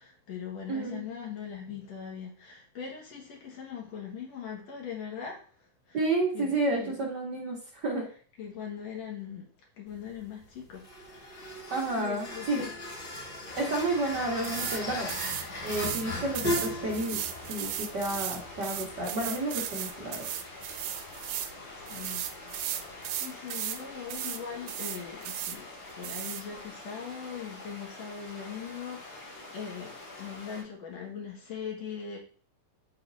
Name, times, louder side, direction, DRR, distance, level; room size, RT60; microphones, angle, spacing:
voice 1, 0.0-5.4 5.9-6.0 6.3-6.5 6.8-7.0 8.4-9.5 9.8-10.8 11.1-11.6 11.9-12.7 21.9-22.2 23.2-25.6 26.0-32.2, left 7 dB, 55° left, 2.6 m, -40 dB
voice 2, 0.7-1.0 5.9-8.1 11.7-12.6 13.6-15.1 15.6-17.2 17.5-20.2, right 2 dB, 70° right, 1.0 m, -31 dB
sound 1, 9.9-23.2, left 2 dB, 40° left, 2.1 m, -39 dB
sound 2, 13.4-30.6, left 2 dB, 85° left, 5.1 m, -46 dB
sound 3, 14.4-14.8 15.1-16.1 16.3-21.5 21.9-23.8 24.1-24.4 24.7-25.6 26.0-26.4, right 11 dB, 85° right, 2.2 m, -36 dB
10.5 x 4.0 x 2.7 m
omnidirectional pair, 3.7 m